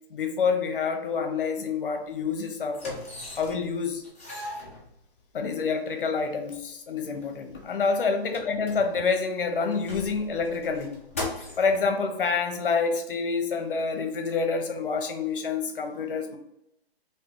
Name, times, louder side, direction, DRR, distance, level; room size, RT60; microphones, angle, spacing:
voice 1, 0.1-3.0 3.4-4.0 5.3-11.0 11.6-16.4, left 5 dB, 55° left, 6 dB, 0.8 m, -27 dB
sound 1, 1.9-2.0 2.7-3.7 4.0-5.4 6.1-6.2 6.5-6.6 7.0-9.2 9.6-11.8 12.6-12.7, left 2 dB, 15° left, 0.4 m, -39 dB
3.1 x 2.8 x 3.6 m, 0.81 s
hypercardioid pair, 160°, 31 cm